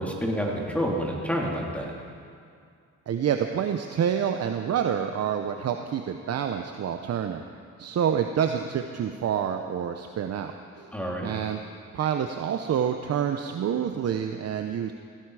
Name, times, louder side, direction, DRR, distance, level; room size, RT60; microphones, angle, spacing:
voice 1, 0.0-1.9 10.9-11.3, equal, 5° left, -2 dB, 3.1 m, -28 dB
voice 2, 3.1-7.4 7.8-10.9 11.2-11.6 11.9-14.9, right 8 dB, 55° right, 6 dB, 0.8 m, -27 dB
17.0 x 16.0 x 4.9 m, 2.3 s
cardioid pair, 90°, 30 cm